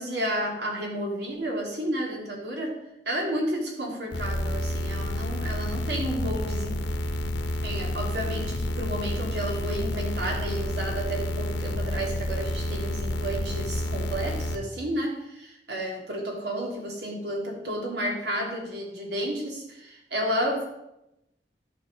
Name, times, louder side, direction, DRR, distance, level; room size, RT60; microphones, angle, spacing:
voice 1, 0.0-2.8 3.1-6.8 7.6-20.7, right 1 dB, 65° right, -1 dB, 2.8 m, -31 dB
sound 1, 4.1-14.6, left 1 dB, 90° left, 1.0 m, -30 dB
13.5 x 5.2 x 5.3 m, 0.88 s
head